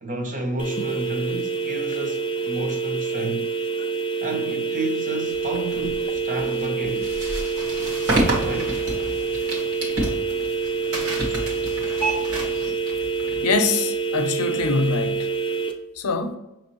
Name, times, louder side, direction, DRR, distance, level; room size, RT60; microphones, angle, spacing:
voice 1, 0.0-3.5 4.2-7.1 8.4-8.8, right 1 dB, 35° right, 0.6 m, -31 dB
sound 1, 0.6-15.7, right 5 dB, 20° left, 0.4 m, -27 dB
sound 2, 5.3-14.0, right 1 dB, 55° right, 1.4 m, -30 dB
sound 3, 7.5-12.7, right 3 dB, 70° right, 1.2 m, -35 dB
voice 2, 13.4-15.3 16.0-16.4, left 4 dB, 80° left, 0.6 m, -23 dB
5.9 x 3.1 x 2.9 m
head